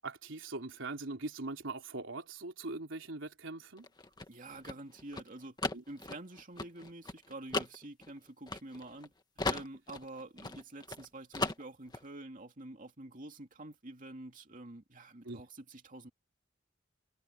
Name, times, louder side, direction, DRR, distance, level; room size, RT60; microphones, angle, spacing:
voice 1, 0.0-3.9 5.7-5.8 15.2-15.4, right 3 dB, 90° right, 3.5 m, -41 dB
sound 1, 3.8-9.1 9.4-11.1 11.3-12.0, left 2 dB, 20° left, 1.7 m, -37 dB
voice 2, 4.3-5.6 5.9-9.1 9.5-16.1, right 2 dB, 45° right, 2.6 m, -48 dB
head